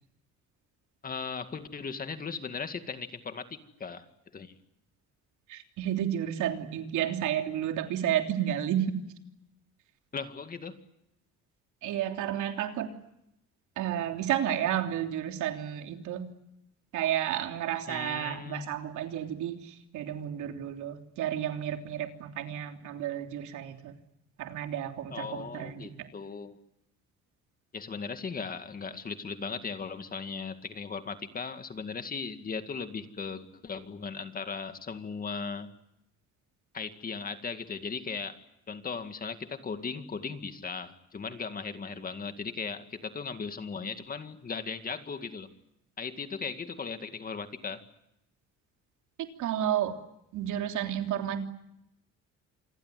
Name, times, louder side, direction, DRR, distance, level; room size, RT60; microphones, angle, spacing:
voice 1, 1.0-4.0 4.3-4.5 10.1-10.7 17.9-18.7 25.1-26.6 27.7-35.7 36.7-38.4 38.7-45.5 46.0-47.8, left 5 dB, 30° left, 9 dB, 2.1 m, -37 dB
voice 2, 5.5-9.0 11.8-12.9 13.8-16.3 16.9-23.9 24.4-26.1 49.2-50.0 50.3-51.4, right 10 dB, 85° right, 5 dB, 3.3 m, -31 dB
27.5 x 21.5 x 9.3 m, 0.82 s
cardioid pair, 145°, 29 cm